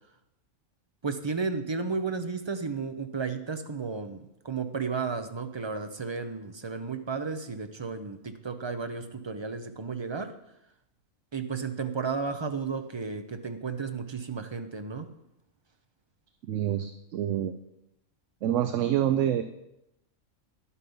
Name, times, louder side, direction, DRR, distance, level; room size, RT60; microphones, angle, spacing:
voice 1, 1.0-10.4 11.3-15.1, right 4 dB, 35° right, 8 dB, 0.4 m, -33 dB
voice 2, 16.5-17.6 18.4-19.4, right 11 dB, 70° right, 10 dB, 0.9 m, -27 dB
10.5 x 8.3 x 5.4 m, 0.86 s
omnidirectional pair, 1.4 m